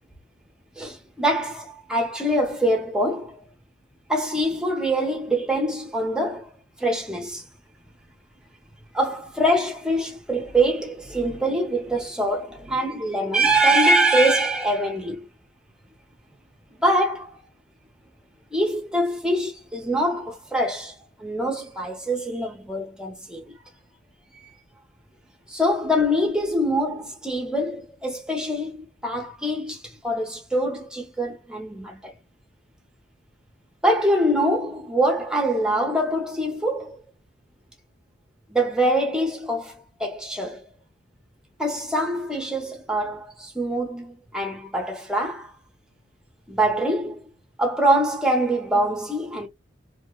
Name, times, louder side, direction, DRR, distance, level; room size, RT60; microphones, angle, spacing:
voice 1, 0.8-3.4 4.1-6.5 6.8-7.4 8.9-15.3 16.8-17.4 18.5-20.9 21.2-23.6 25.5-32.1 33.8-37.0 38.5-39.7 40.0-40.6 41.6-45.5 46.5-47.2 47.6-49.5, right 1 dB, 5° right, 0.7 m, -24 dB
2.8 x 2.1 x 2.2 m
head